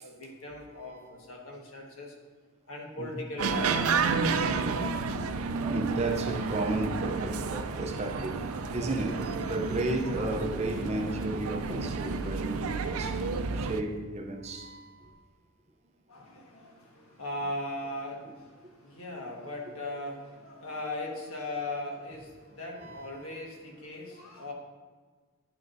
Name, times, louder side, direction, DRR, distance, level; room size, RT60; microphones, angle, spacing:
voice 1, 0.0-2.1 2.7-4.3 16.1-18.5 18.8-24.5, left 1 dB, 80° left, 1.5 m, -38 dB
sound 1, 3.4-13.8, right 4 dB, 80° right, 0.4 m, -31 dB
voice 2, 5.6-13.2 13.6-15.1 22.8-23.1, right 2 dB, 30° right, 0.6 m, -33 dB
10.0 x 6.4 x 2.6 m
head